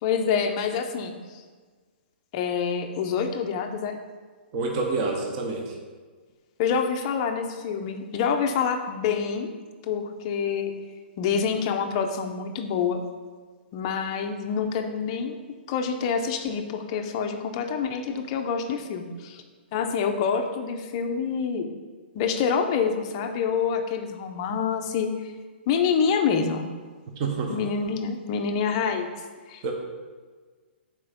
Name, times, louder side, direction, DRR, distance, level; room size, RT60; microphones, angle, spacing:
voice 1, 0.0-1.4 2.3-4.0 6.6-9.5 9.8-10.8 11.2-13.0 13.7-15.4 15.7-19.4 19.7-21.7 22.1-25.3 25.7-26.7 27.5-29.6, left 6 dB, 25° left, 5 dB, 0.5 m, -27 dB
voice 2, 4.5-5.7 27.2-27.5 29.6-29.7, right 3 dB, 25° right, 1 dB, 0.7 m, -27 dB
6.8 x 4.3 x 5.0 m, 1.5 s
hypercardioid pair, 170°, 6 cm